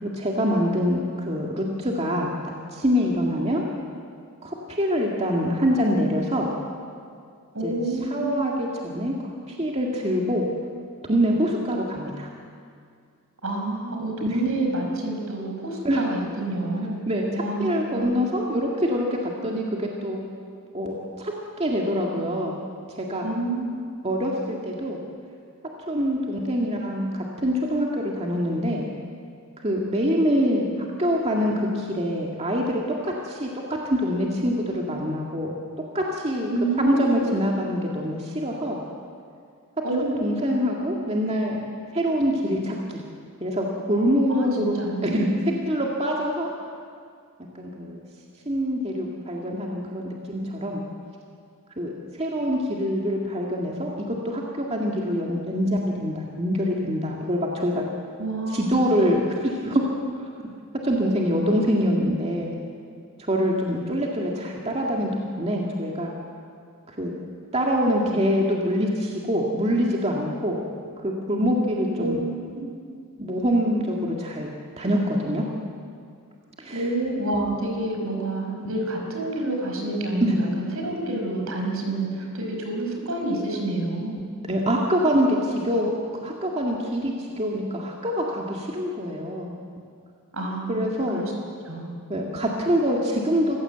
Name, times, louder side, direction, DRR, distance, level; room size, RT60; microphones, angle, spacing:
voice 1, 0.0-2.3 2.7-3.6 4.4-6.5 7.6-7.7 8.1-9.1 9.5-10.5 11.1-12.3 14.3-14.4 15.8-16.1 17.1-17.3 17.6-20.3 20.7-21.3 21.6-22.6 22.9-23.3 24.0-25.0 25.9-28.9 29.6-30.7 31.0-35.6 35.9-36.5 36.8-38.8 40.2-41.6 41.9-42.8 43.4-45.3 45.7-46.5 47.5-48.0 48.5-50.8 51.8-51.9 52.2-57.8 58.5-59.8 60.8-62.5 63.3-65.1 65.4-66.1 66.9-67.1 67.5-70.6 71.0-72.2 73.2-74.5 74.8-75.4 76.6-76.8 80.2-80.3 84.2-85.9 86.2-89.5 90.7-91.2 92.1-93.6, equal, 30° right, -1 dB, 2.1 m, -25 dB
voice 2, 7.5-8.5 13.4-17.0 17.3-18.1 23.2-23.7 36.5-37.5 39.8-40.3 44.3-45.4 58.2-59.1 72.0-72.2 72.5-72.7 76.7-84.2 90.3-90.9 91.1-91.3 91.6-91.9, right 2 dB, 70° right, 1 dB, 5.3 m, -28 dB
27.0 x 15.5 x 8.0 m, 2.2 s
head